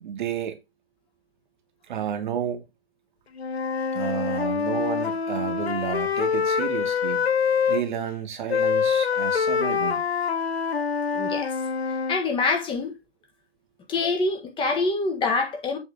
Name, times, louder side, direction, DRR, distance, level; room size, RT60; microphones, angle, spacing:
voice 1, 0.0-0.6 1.9-2.6 3.9-7.3 7.7-10.0, right 8 dB, 50° right, 1.5 m, -31 dB
Wind instrument woodwind instrument, 3.4-7.8 8.5-12.2, left 6 dB, 75° left, 1.0 m, -25 dB
voice 2, 11.1-11.5 12.1-12.9 13.9-15.8, left 3 dB, 15° left, 1.4 m, -25 dB
7.6 x 3.7 x 4.8 m
figure-of-eight pair, 125°, 32 cm